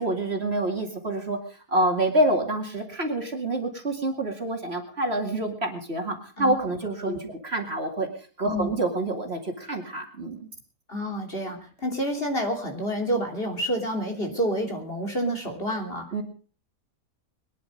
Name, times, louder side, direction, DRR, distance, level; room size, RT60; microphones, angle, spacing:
voice 1, 0.0-1.4 1.7-8.1 8.4-10.5 16.1-16.2, right 1 dB, 40° right, 3 dB, 2.5 m, -27 dB
voice 2, 8.4-8.8 10.9-16.1, equal, 35° left, 2 dB, 3.3 m, -28 dB
22.5 x 10.5 x 5.3 m, 0.42 s
omnidirectional pair, 1.6 m